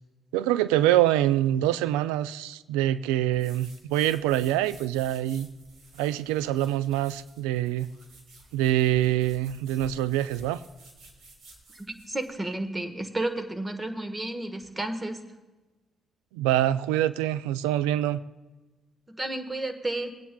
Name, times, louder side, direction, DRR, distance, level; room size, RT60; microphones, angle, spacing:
voice 1, 0.3-5.5 6.0-7.9 8.5-10.6 16.3-18.2, right 13 dB, 85° right, 16 dB, 0.3 m, -25 dB
sound 1, 3.3-12.4, right 2 dB, 65° right, 2.5 m, -53 dB
voice 2, 11.7-15.2 19.1-20.1, right 2 dB, 20° right, 7 dB, 1.3 m, -32 dB
20.5 x 9.1 x 2.3 m, 1.2 s
hypercardioid pair, 55°, 0 cm